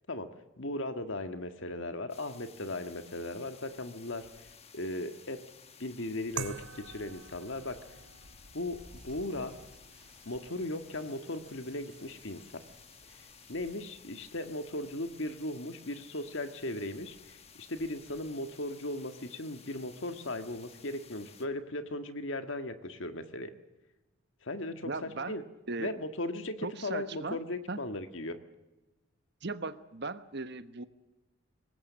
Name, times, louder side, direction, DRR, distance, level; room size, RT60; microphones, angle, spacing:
voice 1, 0.6-4.5 4.7-5.4 5.8-8.0 8.5-9.6 10.3-12.6 13.5-23.5 24.4-25.4 25.8-28.4, left 1 dB, 65° left, 8 dB, 1.7 m, -37 dB
sound 1, 2.1-21.5, left 5 dB, 30° left, 1.3 m, -55 dB
sound 2, 6.4-15.2, right 5 dB, 90° right, 1.7 m, -49 dB
sound 3, 8.8-13.8, right 2 dB, 5° right, 7.5 m, -63 dB
voice 2, 24.8-25.4 25.7-25.9 26.6-27.4 27.7-27.8 29.4-30.8, right 3 dB, 50° right, 12 dB, 1.1 m, -37 dB
24.0 x 20.0 x 7.4 m, 1.0 s
head